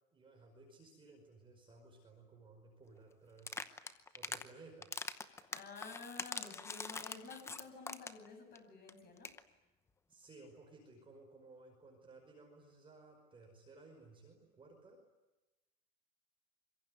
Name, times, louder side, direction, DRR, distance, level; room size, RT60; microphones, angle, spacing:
voice 1, 0.1-3.6 4.1-4.9 10.1-15.0, right 3 dB, 10° right, 2 dB, 5.1 m, -58 dB
sound 1, 3.4-4.4 4.8-8.3 8.6-8.7 8.9-9.0 9.2-9.4, left 4 dB, 5° left, 0.8 m, -43 dB
voice 2, 5.5-9.3, left 4 dB, 20° left, 5 dB, 7.6 m, -51 dB
25.5 x 23.0 x 9.6 m, 1.0 s
supercardioid pair, 155°, 42 cm